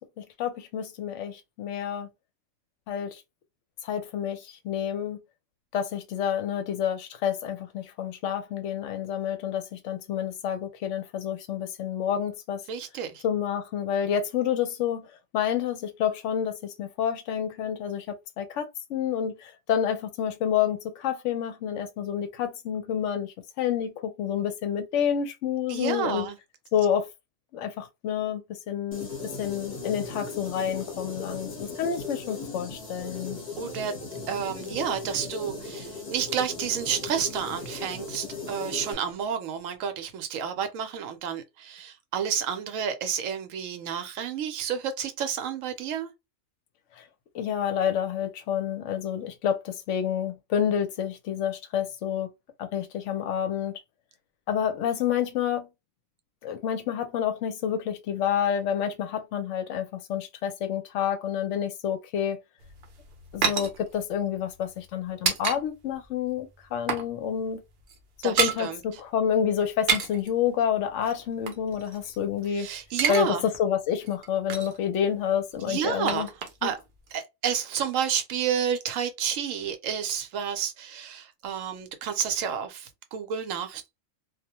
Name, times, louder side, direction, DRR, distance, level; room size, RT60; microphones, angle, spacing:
voice 1, 0.2-2.1 2.9-3.2 3.8-5.2 5.7-12.6 13.2-15.1 15.3-26.3 26.7-27.1 27.5-29.1 29.4-33.4 47.0-47.1 47.3-52.3 52.6-53.8 54.5-55.7 56.4-62.4 63.3-67.6 68.2-72.7 73.1-73.3 73.6-76.3 76.6-76.7, left 9 dB, 70° left, 0.8 m, -29 dB
voice 2, 12.7-13.2 25.7-26.4 33.6-33.9 34.3-46.1 68.2-68.8 72.5-73.4 75.6-76.3 76.6-76.8 77.1-83.8, right 8 dB, 75° right, 0.9 m, -30 dB
sound 1, 28.9-38.9, left 3 dB, 35° left, 0.9 m, -38 dB
sound 2, 62.6-65.6 65.9-66.1 66.4-67.1 67.4-67.5 67.8-68.6 69.7-70.3 71.0-72.5 72.8-73.3 73.5-73.6 74.0-74.8 75.5-76.8 77.1-77.2, right 6 dB, 55° right, 0.6 m, -30 dB
2.3 x 2.1 x 2.8 m
omnidirectional pair, 1.4 m